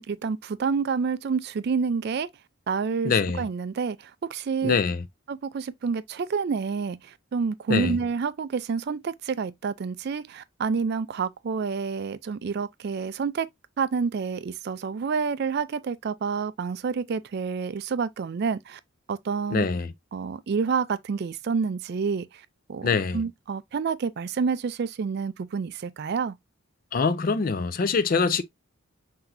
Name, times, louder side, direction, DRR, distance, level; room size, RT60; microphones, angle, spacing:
voice 1, 0.0-2.3 2.7-4.8 5.3-13.5 13.8-18.8 19.1-19.7 20.1-22.3 22.7-26.3, right 5 dB, 50° right, 0.3 m, -28 dB
voice 2, 3.0-3.4 4.6-5.0 7.7-8.0 19.5-19.9 22.8-23.2 26.9-28.4, left 5 dB, 40° left, 0.4 m, -24 dB
5.8 x 2.8 x 2.5 m
head